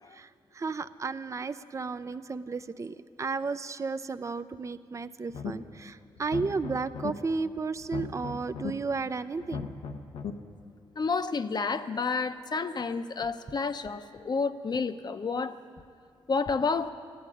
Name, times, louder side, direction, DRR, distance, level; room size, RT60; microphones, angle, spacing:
voice 1, 0.1-9.7, right 4 dB, 30° right, 11 dB, 0.5 m, -33 dB
sound 1, 5.3-5.8 6.2-7.1 7.8-8.7 9.4-10.3, left 6 dB, 85° left, 0.9 m, -37 dB
voice 2, 11.0-15.5 16.3-16.9, left 4 dB, 45° left, 10 dB, 0.7 m, -30 dB
14.0 x 9.4 x 9.8 m, 2.3 s
cardioid pair, 65°, 10 cm